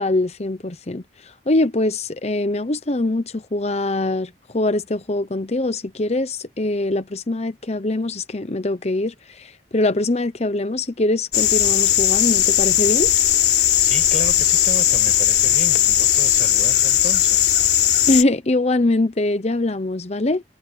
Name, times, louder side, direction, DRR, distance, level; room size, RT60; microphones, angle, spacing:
voice 1, 0.0-13.1 18.1-20.4, left 2 dB, 35° left, 0.9 m, -23 dB
sound 1, 11.3-18.2, left 11 dB, 65° left, 4.8 m, -17 dB
voice 2, 13.8-17.5, right 2 dB, 40° right, 6.1 m, -33 dB
head